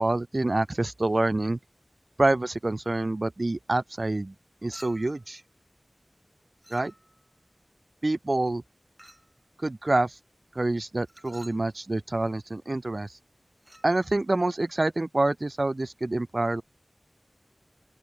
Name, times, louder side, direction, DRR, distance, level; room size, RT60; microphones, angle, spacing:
voice 1, 0.0-1.6 2.2-4.3 4.6-5.4 6.7-6.9 8.0-8.6 9.6-10.2 10.5-13.2 13.8-16.6, right 2 dB, 60° right, 0.3 m, -27 dB
Chink clink, 4.7-5.3 6.6-7.3 9.0-9.4 11.1-11.7 13.6-13.9, right 1 dB, 20° right, 7.1 m, -51 dB
open air
wide cardioid pair, 40°, 0 cm